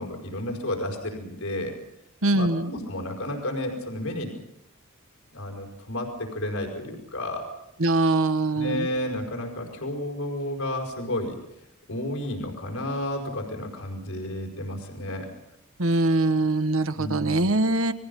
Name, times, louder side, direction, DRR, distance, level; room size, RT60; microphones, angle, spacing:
voice 1, 0.0-1.8 2.3-4.3 5.3-7.5 8.5-11.4 11.9-15.3 17.0-17.5, left 1 dB, 75° left, 2 dB, 5.1 m, -31 dB
voice 2, 2.2-2.7 7.8-8.9 15.8-17.9, right 2 dB, 70° right, 10 dB, 1.5 m, -23 dB
30.0 x 22.0 x 5.5 m, 0.82 s
head